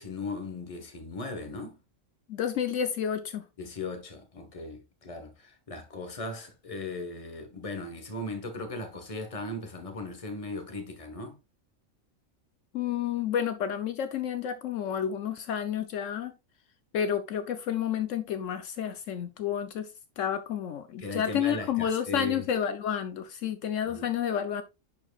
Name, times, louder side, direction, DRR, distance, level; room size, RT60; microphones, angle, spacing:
voice 1, 0.0-1.8 3.6-11.4 21.0-22.5 23.8-24.1, left 2 dB, 30° left, 1.2 m, -37 dB
voice 2, 2.3-3.5 12.7-16.3 16.9-19.9 20.2-24.6, left 9 dB, 75° left, 1.0 m, -30 dB
10.5 x 4.5 x 2.3 m
omnidirectional pair, 1.3 m